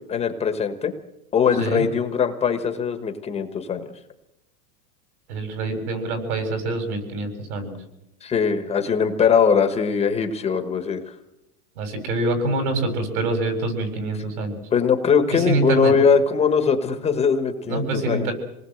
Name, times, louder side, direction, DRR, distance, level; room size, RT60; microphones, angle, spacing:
voice 1, 0.1-0.9 1.3-3.9 8.2-11.0 14.7-18.3, left 6 dB, 15° left, 7 dB, 1.2 m, -21 dB
voice 2, 5.3-7.8 11.8-14.6 15.3-15.9 17.7-18.3, right 2 dB, 80° right, 5 dB, 7.8 m, -25 dB
27.0 x 19.5 x 7.9 m, 0.89 s
supercardioid pair, 170°, 44 cm